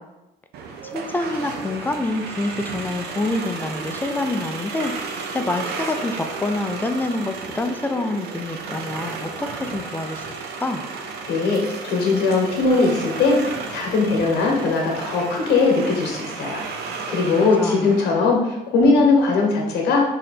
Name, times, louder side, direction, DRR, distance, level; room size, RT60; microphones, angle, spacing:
sound 1, 0.5-18.1, right 4 dB, 75° right, 0.6 m, -33 dB
voice 1, 0.9-4.9 5.3-10.3 10.6-10.9 17.4-18.0, left 2 dB, 10° left, 6 dB, 0.3 m, -27 dB
voice 2, 11.3-16.6 17.1-20.0, left 3 dB, 80° left, -1 dB, 0.9 m, -20 dB
3.2 x 2.8 x 4.1 m, 0.97 s
cardioid pair, 110°, 17 cm